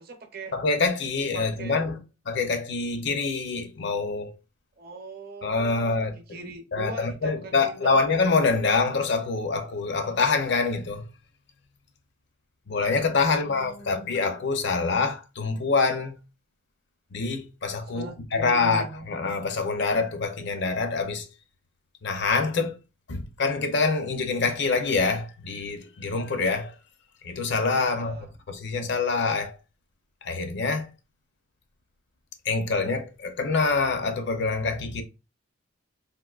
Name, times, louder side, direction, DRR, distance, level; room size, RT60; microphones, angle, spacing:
voice 1, 0.0-0.5 1.3-1.8 4.8-5.9 6.3-8.1 13.2-14.1 17.9-19.1 27.8-28.3, right 3 dB, 45° right, 0.7 m, -41 dB
voice 2, 0.5-4.4 5.4-6.1 6.7-11.1 12.7-16.2 17.1-21.3 22.0-22.8 23.1-26.7 27.2-29.6 30.2-30.9 32.4-35.0, left 4 dB, 55° left, 0.5 m, -26 dB
3.6 x 2.5 x 2.3 m
head